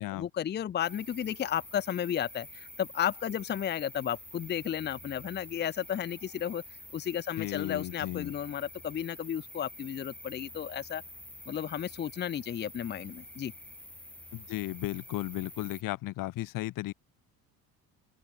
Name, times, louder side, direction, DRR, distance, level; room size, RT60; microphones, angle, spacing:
voice 1, 0.0-6.6 6.9-11.0 11.5-13.5, left 9 dB, 30° left, 0.8 m, -33 dB
sound 1, 0.8-15.8, left 1 dB, 5° left, 2.6 m, -48 dB
voice 2, 7.4-8.3 14.3-16.9, left 17 dB, 60° left, 1.5 m, -35 dB
open air
cardioid pair, 165°, 37 cm